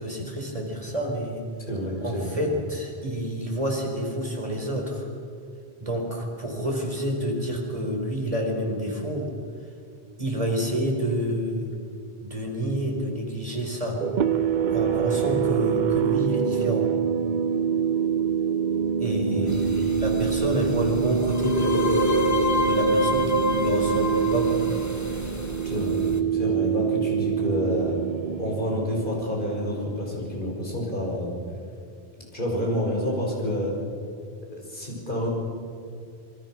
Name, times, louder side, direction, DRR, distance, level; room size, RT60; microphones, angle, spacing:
voice 1, 0.0-1.4 2.0-5.1 5.8-9.3 10.2-11.7 12.2-14.0 14.7-16.9 19.0-22.2 22.6-24.8, equal, 30° right, 0 dB, 4.5 m, -28 dB
voice 2, 1.7-2.4 19.3-19.5 25.6-26.0 26.3-27.9 28.4-31.4 32.3-33.7 34.7-35.3, equal, 50° left, -2 dB, 6.3 m, -28 dB
sound 1, 14.0-30.3, right 8 dB, 50° right, 0.8 m, -26 dB
sound 2, 19.5-26.2, left 1 dB, 15° left, 1.3 m, -27 dB
27.0 x 22.5 x 6.1 m, 2.4 s
omnidirectional pair, 1.1 m